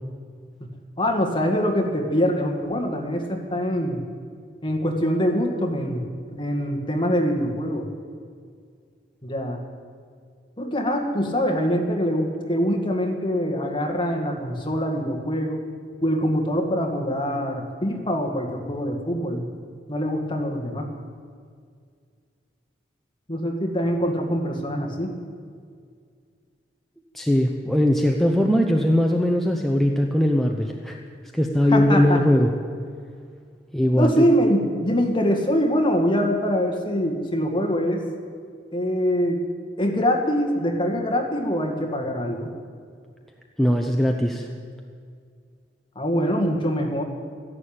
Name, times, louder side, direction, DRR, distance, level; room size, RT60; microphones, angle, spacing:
voice 1, 1.0-4.0 4.6-6.0 6.3-7.9 9.2-9.6 10.6-15.6 16.0-19.5 19.9-20.9 23.3-25.1 31.7-32.2 33.9-38.0 38.7-39.4 39.8-42.5 46.0-47.0, equal, 25° left, 2 dB, 1.9 m, -24 dB
voice 2, 27.1-31.0 31.3-32.5 33.7-34.2 43.6-44.5, left 1 dB, ahead, 1 dB, 0.8 m, -20 dB
13.5 x 11.0 x 9.0 m, 2.1 s
head